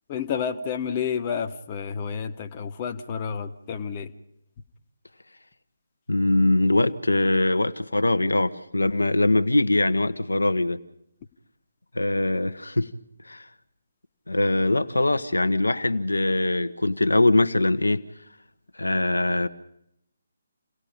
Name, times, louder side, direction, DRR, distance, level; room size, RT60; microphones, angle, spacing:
voice 1, 0.1-4.1, left 7 dB, 25° left, 5 dB, 1.3 m, -30 dB
voice 2, 6.1-10.8 11.9-12.9 13.2-13.5 14.3-18.0 18.7-19.5, left 2 dB, 75° left, 9 dB, 1.2 m, -22 dB
29.0 x 18.0 x 5.2 m, 0.77 s
figure-of-eight pair, 145°, 0 cm